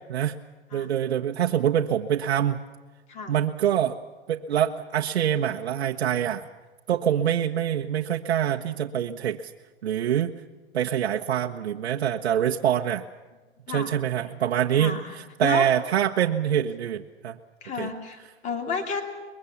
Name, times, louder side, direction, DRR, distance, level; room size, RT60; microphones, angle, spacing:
voice 1, 0.7-2.6 3.3-4.0 4.3-6.5 6.9-9.5 9.8-10.3 10.7-13.0 13.7-17.4 17.8-17.9, right 10 dB, 75° right, 1 dB, 1.2 m, -25 dB
voice 2, 13.7-14.0 14.7-15.7 17.6-19.0, left 5 dB, 20° left, 6 dB, 2.8 m, -32 dB
23.5 x 22.0 x 7.1 m, 1.3 s
hypercardioid pair, 160°, 33 cm